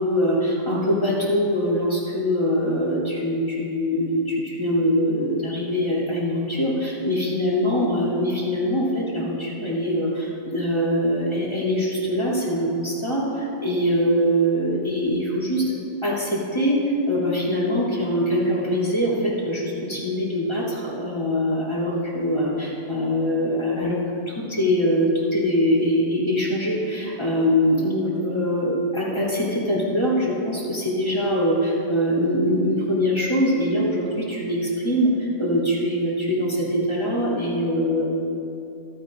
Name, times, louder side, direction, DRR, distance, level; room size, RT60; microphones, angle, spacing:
voice 1, 0.0-15.7 16.0-24.0 24.3-38.0, equal, 20° left, -8 dB, 3.0 m, -23 dB
15.5 x 12.5 x 2.6 m, 2.7 s
omnidirectional pair, 1.4 m